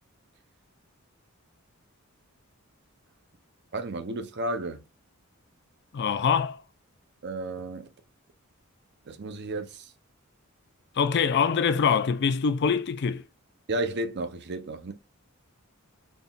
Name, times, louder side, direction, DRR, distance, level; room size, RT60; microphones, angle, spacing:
voice 1, 3.7-4.8 7.2-7.9 9.1-9.9 13.7-14.9, right 2 dB, 50° right, 0.6 m, -32 dB
voice 2, 5.9-6.6 11.0-13.2, left 6 dB, 50° left, 0.4 m, -24 dB
4.0 x 3.5 x 2.3 m
head